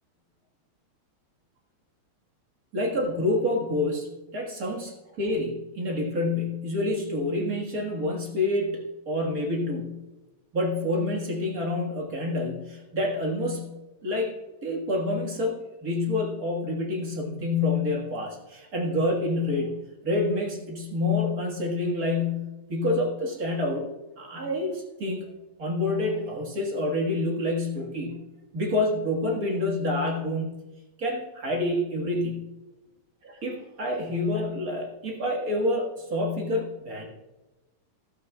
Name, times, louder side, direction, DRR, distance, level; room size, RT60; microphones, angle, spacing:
voice 1, 2.7-10.0 10.5-13.7 14.0-14.3 14.6-19.7 20.0-23.9 24.2-25.3 25.6-28.2 28.5-30.5 31.0-32.4 33.2-37.1, left 2 dB, 40° right, 0 dB, 1.6 m, -28 dB
13.0 x 13.0 x 2.3 m, 1.1 s
omnidirectional pair, 3.4 m